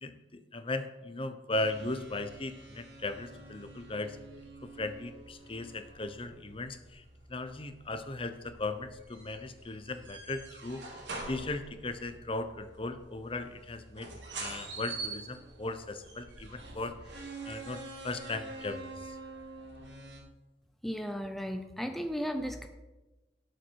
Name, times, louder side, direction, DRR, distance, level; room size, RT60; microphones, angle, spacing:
voice 1, 0.0-4.2 4.6-7.0 7.3-10.8 11.2-14.1 14.4-17.8 18.0-19.2, left 2 dB, 30° left, 9 dB, 0.8 m, -37 dB
sound 1, 1.5-20.2, right 3 dB, 75° right, 3.0 m, -46 dB
voice 2, 20.8-22.7, equal, ahead, 5 dB, 0.6 m, -35 dB
17.5 x 6.8 x 4.7 m, 1.1 s
head